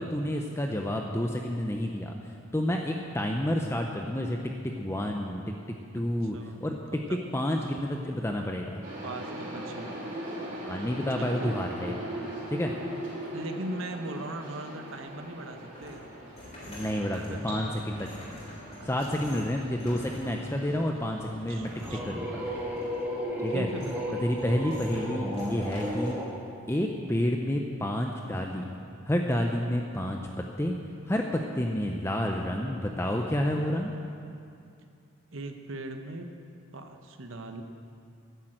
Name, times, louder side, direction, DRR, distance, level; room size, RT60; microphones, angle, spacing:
voice 1, 0.0-5.4 5.9-6.8 7.3-8.8 10.6-12.2 12.5-12.7 16.7-18.0 18.9-22.3 23.4-23.7 24.2-26.2 26.7-28.8 29.0-30.7 31.0-33.9, left 1 dB, 10° left, 2 dB, 0.6 m, -30 dB
voice 2, 6.0-6.6 7.1-7.2 9.0-9.9 11.1-11.5 13.3-16.0 17.0-17.8 18.8-19.5 21.5-22.0 23.5-24.6 35.3-36.3 36.7-37.6, right 1 dB, 70° right, 5 dB, 1.0 m, -40 dB
sound 1, 8.8-23.4, right 1 dB, 40° right, 3.2 m, -41 dB
sound 2, 14.9-26.2, left 1 dB, 30° left, 3.6 m, -48 dB
sound 3, 21.5-26.3, equal, 10° right, 1.9 m, -34 dB
10.5 x 10.5 x 7.8 m, 2.5 s
head